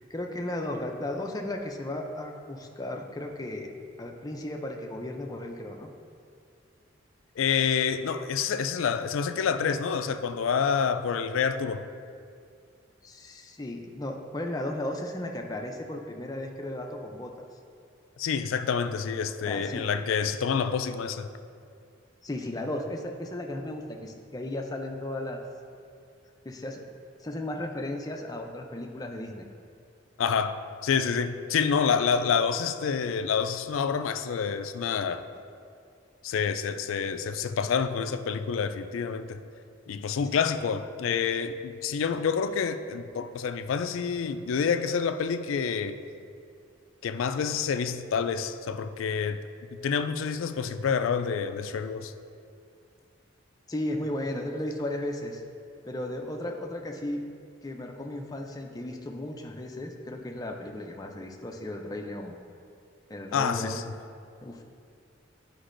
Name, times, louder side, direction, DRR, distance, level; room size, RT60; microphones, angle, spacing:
voice 1, 0.1-3.7 4.0-5.9 13.0-17.5 19.4-19.8 22.2-25.4 26.4-26.8 27.2-29.5 53.7-55.4 55.8-57.3 57.6-62.3 63.1-63.8 64.4-64.6, left 1 dB, 20° left, 2 dB, 0.4 m, -35 dB
voice 2, 7.4-11.8 18.2-21.3 30.2-35.2 36.2-39.4 39.9-45.9 47.0-49.4 49.7-52.1 63.3-63.8, left 6 dB, 90° left, 10 dB, 0.3 m, -28 dB
9.9 x 5.2 x 2.5 m, 2.3 s
head